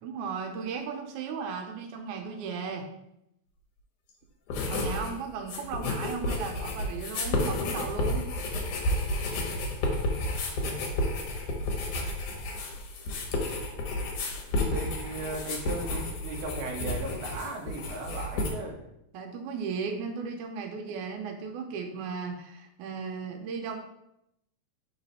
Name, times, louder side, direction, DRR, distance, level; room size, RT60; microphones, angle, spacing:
voice 1, 0.0-2.9 4.7-8.3 19.1-23.8, right 5 dB, 85° right, 4 dB, 2.1 m, -35 dB
sound 1, 4.5-5.1 5.4-18.5, left 2 dB, 85° left, 2.5 m, -31 dB
voice 2, 14.7-18.8, right 2 dB, 65° right, 1 dB, 1.5 m, -37 dB
4.9 x 4.0 x 5.3 m, 0.81 s
omnidirectional pair, 3.5 m